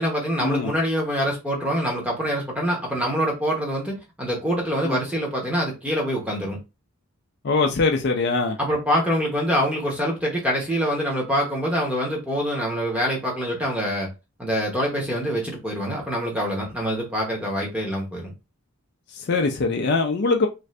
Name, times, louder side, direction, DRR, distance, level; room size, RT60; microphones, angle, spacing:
voice 1, 0.0-6.6 8.6-14.1 14.4-18.3, equal, 5° right, 0.9 m, -25 dB
voice 2, 7.4-8.6 19.1-20.5, left 3 dB, 50° left, 0.4 m, -22 dB
2.6 x 2.4 x 3.2 m
head